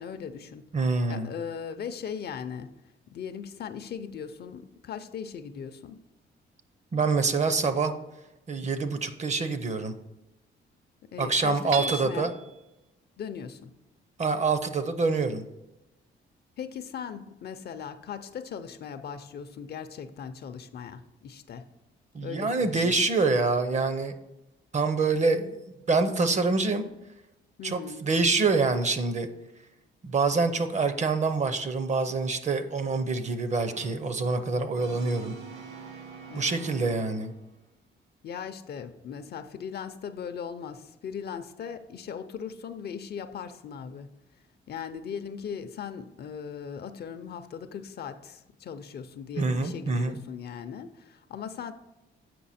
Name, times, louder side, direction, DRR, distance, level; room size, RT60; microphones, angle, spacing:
voice 1, 0.0-0.6 1.1-2.7 3.1-6.0 11.1-12.3 13.2-13.7 16.6-21.7 22.2-22.9 27.6-28.0 36.3-36.6 36.9-37.0 38.2-44.1 44.7-51.7, left 7 dB, 55° left, 0.5 m, -38 dB
voice 2, 0.7-1.3 6.9-7.9 8.5-9.9 11.2-12.3 14.2-15.4 22.1-24.1 24.7-25.6 25.9-26.9 27.6-29.3 30.0-35.4 36.3-37.3 49.4-50.2, right 4 dB, 35° right, 0.6 m, -26 dB
Hammer / Chink clink, 11.7-12.5, right 4 dB, 85° right, 0.7 m, -33 dB
Brass instrument, 33.7-37.5, right 5 dB, 65° right, 1.7 m, -46 dB
7.5 x 5.5 x 4.2 m
cardioid pair, 110°, 20 cm